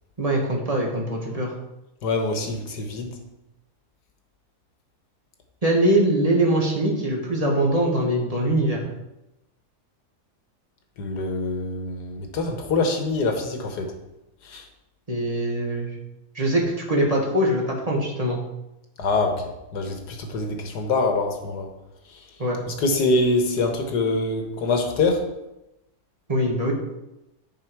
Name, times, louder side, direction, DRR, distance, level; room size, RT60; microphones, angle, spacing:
voice 1, 0.2-1.5 5.6-8.8 15.1-15.9 16.3-18.4 22.4-22.6 26.3-26.7, right 1 dB, 25° right, -1 dB, 1.4 m, -22 dB
voice 2, 2.0-3.1 11.0-13.9 14.5-14.6 19.0-19.4 19.7-21.7 22.7-25.2, left 3 dB, 85° left, 4 dB, 1.6 m, -24 dB
10.0 x 4.3 x 4.6 m, 0.94 s
omnidirectional pair, 1.7 m